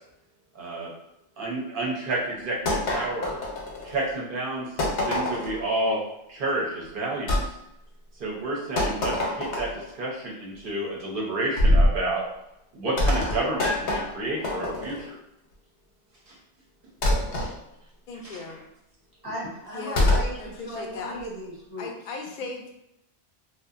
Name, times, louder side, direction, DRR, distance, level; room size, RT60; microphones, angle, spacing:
voice 1, 0.5-0.9 1.4-3.4 3.8-6.0 6.3-7.5 8.2-12.2 12.7-15.1 16.3-16.4 17.1-17.5, right 2 dB, 55° right, -3 dB, 0.7 m, -30 dB
sound 1, 2.7-4.1 4.8-5.6 7.3-7.5 8.8-9.9 11.6-12.0 13.0-15.1 17.0-17.5 20.0-20.3, left 1 dB, 75° left, 0.9 m, -24 dB
voice 2, 18.1-18.6 19.7-20.1 20.4-21.2 21.8-22.7, left 4 dB, 60° left, 1 dB, 0.5 m, -36 dB
voice 3, 19.2-21.9, equal, 20° right, -7 dB, 0.8 m, -37 dB
2.6 x 2.1 x 2.4 m, 0.85 s
omnidirectional pair, 1.2 m